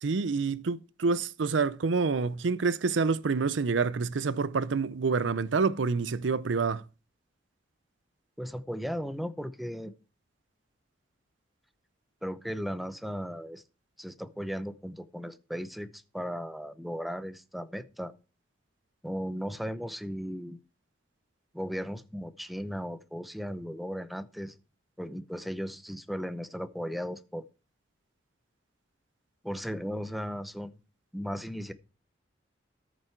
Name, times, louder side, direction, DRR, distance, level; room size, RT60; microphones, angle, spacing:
voice 1, 0.0-6.8, right 4 dB, 85° right, 0.6 m, -27 dB
voice 2, 8.4-9.9 12.2-13.6 14.0-18.1 19.0-20.6 21.5-24.6 25.0-27.5 29.4-30.8 31.1-31.7, equal, ahead, 0.7 m, -36 dB
13.5 x 6.2 x 4.5 m
head